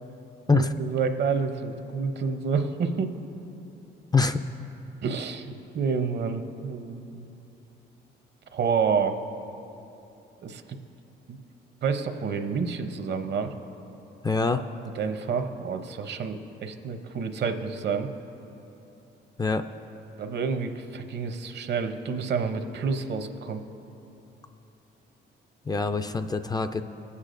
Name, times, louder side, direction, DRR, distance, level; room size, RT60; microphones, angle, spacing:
voice 1, 0.5-3.1 5.0-7.2 8.5-9.2 10.4-10.6 11.3-11.4 11.8-13.5 15.0-18.1 20.2-23.6, right 5 dB, 60° right, 7 dB, 0.8 m, -29 dB
voice 2, 14.2-14.6 19.4-19.6 25.7-26.8, left 4 dB, 20° left, 7 dB, 0.4 m, -24 dB
19.0 x 8.3 x 2.6 m, 2.9 s
cardioid pair, 90°, 20 cm